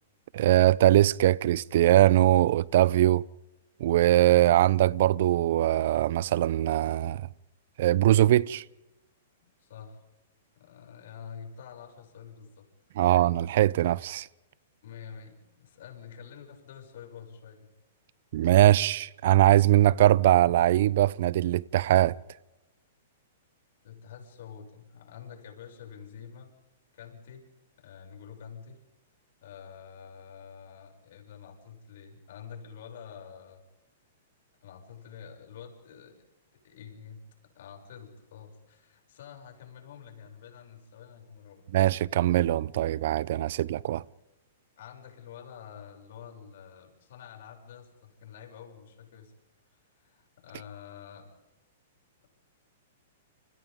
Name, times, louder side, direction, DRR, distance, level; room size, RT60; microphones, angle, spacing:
voice 1, 0.3-3.2 3.8-7.3 7.8-8.6 13.0-14.3 18.3-22.1 41.7-44.0, right 14 dB, 60° right, 0.7 m, -22 dB
voice 2, 9.4-10.0 10.6-12.7 14.8-17.7 23.8-26.5 26.9-27.4 27.8-28.8 29.4-33.6 34.6-36.2 36.5-41.7 44.8-49.3 49.7-51.3, left 7 dB, 65° left, 7.4 m, -47 dB
29.5 x 29.5 x 3.8 m
hypercardioid pair, 120°, 0 cm